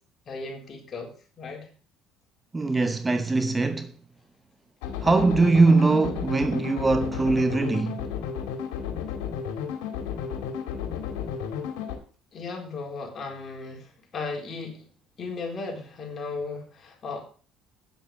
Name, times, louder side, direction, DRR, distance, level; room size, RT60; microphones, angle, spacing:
voice 1, 0.3-1.1 1.4-1.7 12.3-14.9 15.2-17.2, left 4 dB, 40° left, 4.0 m, -36 dB
voice 2, 2.5-3.9 5.0-8.1, right 3 dB, 20° right, 0.9 m, -21 dB
sound 1, 4.8-12.0, left 7 dB, 90° left, 2.2 m, -33 dB
9.1 x 7.5 x 6.6 m
supercardioid pair, 90°, 0 cm